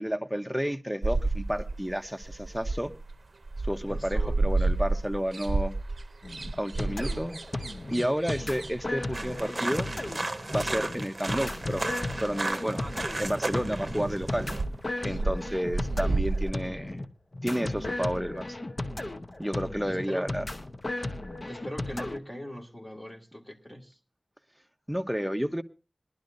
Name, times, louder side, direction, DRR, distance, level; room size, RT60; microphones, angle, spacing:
voice 1, 0.0-2.9 3.6-5.7 6.6-7.4 7.9-9.9 10.5-11.8 12.2-12.8 13.2-14.5 15.0-17.0 17.4-18.4 19.4-20.4 24.9-25.6, equal, 5° right, 0.9 m, -31 dB
sound 1, 1.0-3.1 3.5-9.4 11.8-11.9 12.3-12.4 12.5-12.6 12.8-13.3 13.6-14.8 15.1-16.5, right 3 dB, 80° right, 0.6 m, -30 dB
voice 2, 3.9-4.7 15.0-15.3 19.9-20.3 21.4-24.0, left 1 dB, 20° left, 2.3 m, -41 dB
sound 2, 6.2-22.2, left 2 dB, 50° left, 0.9 m, -35 dB
asd kavely, 9.1-14.6, right 2 dB, 50° right, 0.8 m, -34 dB
21.5 x 11.5 x 2.6 m
wide cardioid pair, 65°, 0 cm